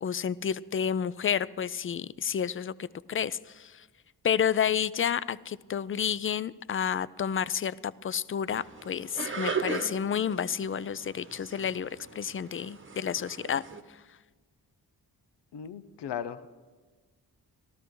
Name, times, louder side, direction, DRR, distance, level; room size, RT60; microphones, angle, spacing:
voice 1, 0.0-3.9 4.2-14.0, left 8 dB, 30° left, 19 dB, 0.4 m, -30 dB
sound 1, 8.5-13.8, right 4 dB, 30° right, 1.1 m, -38 dB
voice 2, 15.5-16.5, left 8 dB, 80° left, 13 dB, 0.7 m, -37 dB
14.0 x 12.5 x 4.6 m, 1.4 s
supercardioid pair, 45°, 41 cm